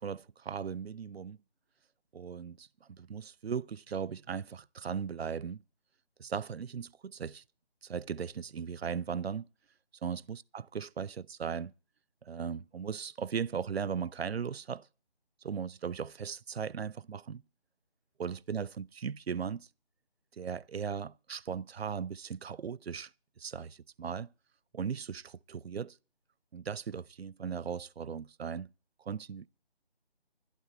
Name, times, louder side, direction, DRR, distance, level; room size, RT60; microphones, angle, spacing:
voice 1, 0.0-1.4 2.1-5.6 6.2-7.4 7.8-9.5 10.0-11.7 12.2-14.9 15.4-17.4 18.2-19.7 20.4-23.1 23.4-24.3 24.7-26.0 26.5-28.7 29.0-29.5, right 7 dB, 75° right, 0.6 m, -37 dB
12.0 x 8.3 x 8.8 m
figure-of-eight pair, 175°, 31 cm